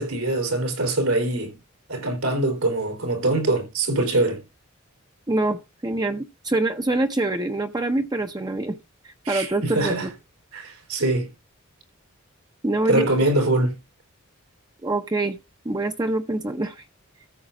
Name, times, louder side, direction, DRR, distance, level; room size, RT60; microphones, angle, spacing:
voice 1, 0.0-1.6 1.9-4.4 9.3-9.5 9.7-10.1 10.5-11.3 12.9-13.7, right 2 dB, 85° right, 4.0 m, -23 dB
voice 2, 5.3-8.8 9.0-10.1 12.6-13.1 14.8-15.4 15.6-16.8, right 2 dB, 20° right, 0.6 m, -25 dB
14.0 x 7.0 x 3.8 m
head